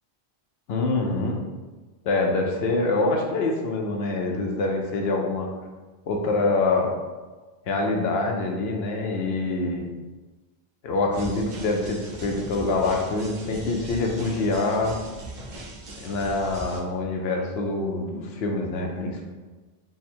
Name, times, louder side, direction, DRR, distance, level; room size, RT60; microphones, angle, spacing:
voice 1, 0.7-1.4 2.0-5.5 6.1-6.9 7.7-9.9 10.8-15.0 16.0-19.2, left 2 dB, 70° left, 1 dB, 0.8 m, -25 dB
sound 1, 11.1-16.8, right 2 dB, 55° right, 0.7 m, -39 dB
3.5 x 2.1 x 4.3 m, 1.3 s
omnidirectional pair, 1.1 m